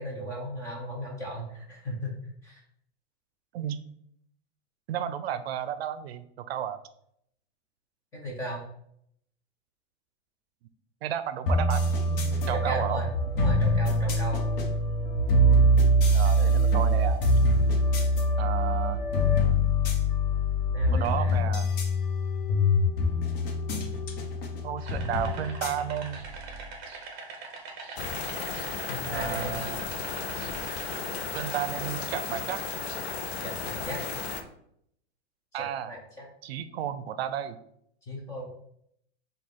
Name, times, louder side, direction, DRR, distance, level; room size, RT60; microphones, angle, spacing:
voice 1, 0.0-2.6 8.1-8.7 12.5-14.4 20.7-21.5 28.9-29.6 33.4-34.0 35.5-36.3 38.1-38.5, equal, 10° left, -2 dB, 0.3 m, -36 dB
voice 2, 4.9-6.8 11.0-13.0 16.1-17.2 18.4-19.0 20.9-21.7 24.0-24.3 24.6-26.2 29.1-29.9 31.3-32.6 35.5-35.9 36.4-37.6, right 9 dB, 75° right, 12 dB, 0.5 m, -32 dB
sound 1, 11.5-26.7, equal, 60° left, 0.9 m, -24 dB
sound 2, 24.8-31.1, right 3 dB, 30° right, 0.8 m, -43 dB
sound 3, 28.0-34.4, left 6 dB, 80° left, 0.6 m, -34 dB
4.9 x 2.3 x 3.7 m, 0.72 s
supercardioid pair, 155°, 32 cm